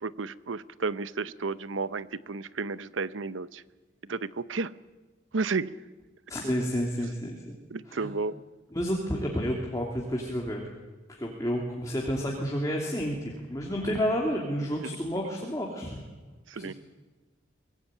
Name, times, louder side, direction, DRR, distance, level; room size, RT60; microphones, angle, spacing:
voice 1, 0.0-3.6 4.1-4.7 5.3-5.8 7.7-8.4 16.5-16.7, right 4 dB, 90° right, 16 dB, 0.8 m, -32 dB
voice 2, 6.3-7.6 7.9-8.1 8.7-10.6 11.1-16.0 16.5-16.7, equal, 20° left, -2 dB, 2.9 m, -30 dB
23.5 x 20.0 x 9.1 m, 1.2 s
head